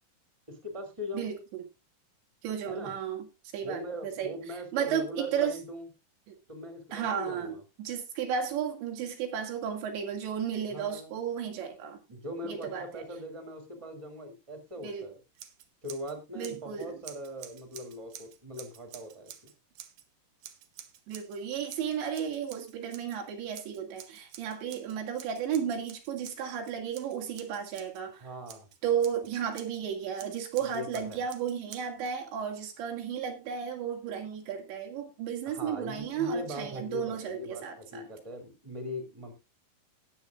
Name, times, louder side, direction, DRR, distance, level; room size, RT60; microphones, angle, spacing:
voice 1, 0.5-1.4 2.7-2.9 3.6-5.9 6.5-7.6 10.7-11.1 12.1-15.2 15.8-19.3 28.2-28.7 30.7-31.2 35.5-39.3, left 1 dB, 10° right, 6 dB, 2.6 m, -40 dB
voice 2, 1.1-1.6 2.4-3.3 3.5-5.6 6.9-12.0 12.4-13.0 14.8-15.1 16.4-17.0 21.1-28.3 28.8-38.1, right 8 dB, 90° right, 3 dB, 4.7 m, -33 dB
Scissors, 15.3-16.1 16.4-20.0 20.4-21.4 21.7-23.2 23.5-28.0 28.5-29.8 30.2-32.1, right 10 dB, 65° right, 2.4 m, -50 dB
18.5 x 8.5 x 2.6 m, 0.25 s
omnidirectional pair, 5.0 m